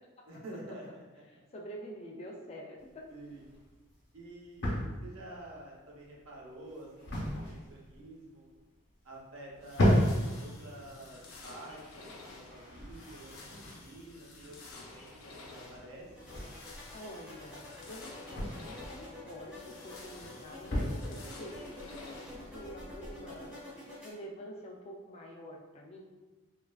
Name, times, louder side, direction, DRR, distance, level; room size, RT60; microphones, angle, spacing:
voice 1, 0.3-1.0 3.1-3.4 4.1-8.5 9.0-10.1 10.4-16.3, right 1 dB, 75° right, -4 dB, 0.7 m, -49 dB
voice 2, 1.3-3.0 16.9-23.5 24.0-26.0, equal, 30° left, -1 dB, 0.3 m, -47 dB
sound 1, 2.8-22.5, equal, 55° left, 0.9 m, -36 dB
sound 2, 9.6-22.7, left 2 dB, 90° left, 0.5 m, -51 dB
sound 3, 16.1-24.1, left 1 dB, 5° right, 0.6 m, -48 dB
3.0 x 2.3 x 2.2 m, 1.2 s
head